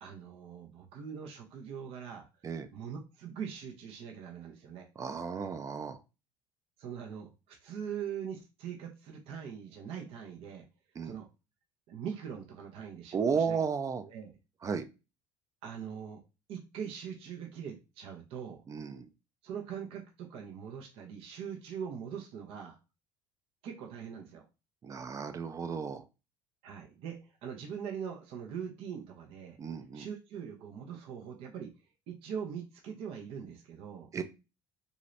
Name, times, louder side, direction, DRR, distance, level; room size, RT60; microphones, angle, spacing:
voice 1, 0.0-4.9 6.8-10.6 11.0-11.3 11.9-13.6 14.0-14.3 15.6-16.2 16.5-18.6 19.4-22.8 23.6-24.4 26.6-29.6 29.9-31.7 32.1-34.1, right 7 dB, 65° right, 2 dB, 0.7 m, -42 dB
voice 2, 5.0-6.0 11.0-11.2 13.1-14.0 14.6-14.9 18.7-19.1 24.8-26.0 29.6-30.1 34.1-34.2, right 6 dB, 30° right, 11 dB, 0.4 m, -33 dB
2.7 x 2.5 x 3.1 m, 0.28 s
supercardioid pair, 95°, 10 cm